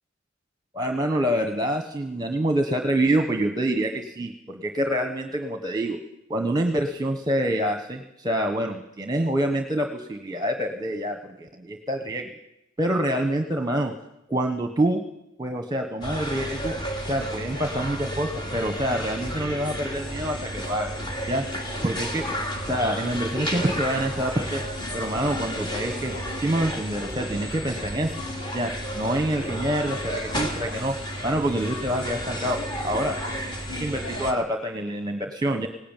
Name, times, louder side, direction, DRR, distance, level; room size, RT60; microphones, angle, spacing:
voice 1, 0.7-6.0 6.3-12.3 12.8-13.9 14.3-15.0 15.4-16.8 17.0-20.9 21.3-21.4 21.8-22.2 22.7-24.6 24.9-26.1 26.4-28.2 28.5-30.9 31.2-32.6 32.8-33.2 33.8-35.7, right 1 dB, 20° right, 6 dB, 1.3 m, -26 dB
sound 1, 16.0-34.3, equal, 20° left, 2.9 m, -32 dB
19.0 x 17.5 x 9.1 m, 0.84 s
head